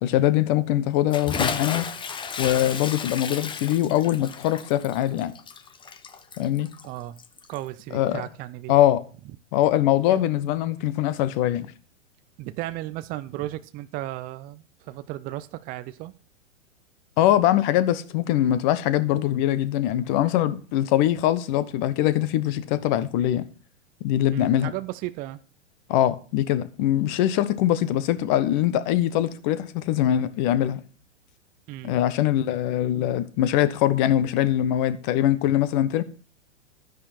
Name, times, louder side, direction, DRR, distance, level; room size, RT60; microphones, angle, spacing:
voice 1, 0.0-1.9 2.4-5.3 6.4-6.7 7.9-8.2 8.7-9.0 9.5-11.7 17.2-23.5 24.0-24.7 25.9-30.8 31.8-36.0, left 12 dB, 40° left, 1.2 m, -22 dB
Bathtub (filling or washing) / Splash splatter, 1.1-7.7, left 6 dB, 15° left, 0.8 m, -33 dB
voice 2, 6.8-7.2 7.5-8.7 10.1-10.5 12.4-16.1 24.3-25.4 31.7-31.9, right 16 dB, 25° right, 0.6 m, -35 dB
12.0 x 10.0 x 4.5 m
figure-of-eight pair, 110°, 38 cm